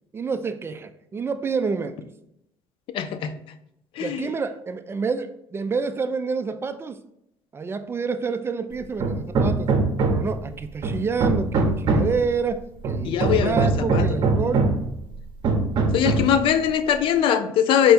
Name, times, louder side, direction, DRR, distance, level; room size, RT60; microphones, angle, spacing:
voice 1, 0.1-2.0 4.0-7.0 7.5-9.7 10.1-14.7, right 5 dB, 25° right, 9 dB, 0.3 m, -28 dB
voice 2, 2.9-3.3 4.0-4.2 13.0-14.1 15.9-17.9, left 9 dB, 65° left, 11 dB, 0.4 m, -21 dB
Hammer, 9.0-10.4 10.8-12.2 12.8-14.9 15.4-16.4, right 3 dB, 55° right, 0.8 m, -22 dB
4.5 x 2.2 x 4.1 m, 0.79 s
supercardioid pair, 95°, 10 cm